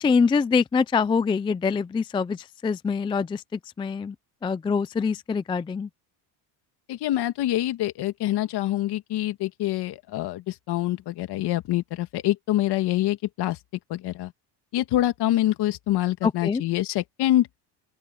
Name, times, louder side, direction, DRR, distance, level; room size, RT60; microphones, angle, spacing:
voice 1, 0.0-4.1 4.4-5.9 16.2-16.6, left 5 dB, 10° left, 0.4 m, -24 dB
voice 2, 6.9-13.6 13.9-14.3 14.7-17.5, left 14 dB, 55° left, 1.9 m, -25 dB
open air
cardioid pair, 125°, 46 cm